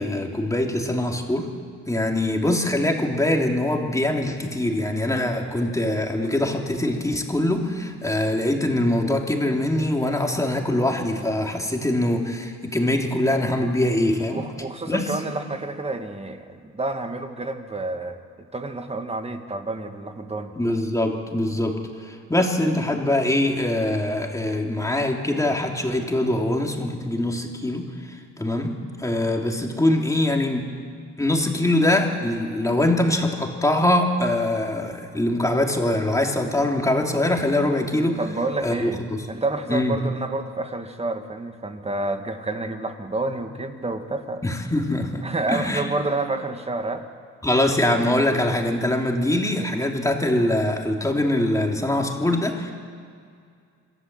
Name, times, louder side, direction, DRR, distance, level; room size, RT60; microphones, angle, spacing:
voice 1, 0.0-1.5 1.9-14.4 14.9-15.0 20.5-30.7 31.2-38.2 38.6-39.3 39.7-40.0 44.4-45.9 47.4-52.7, left 1 dB, 10° left, 1 dB, 3.0 m, -23 dB
voice 2, 14.3-18.2 18.5-20.5 38.2-44.4 45.2-47.0, right 2 dB, 20° right, 6 dB, 1.8 m, -29 dB
26.5 x 13.0 x 8.0 m, 2.3 s
cardioid pair, 90°, 30 cm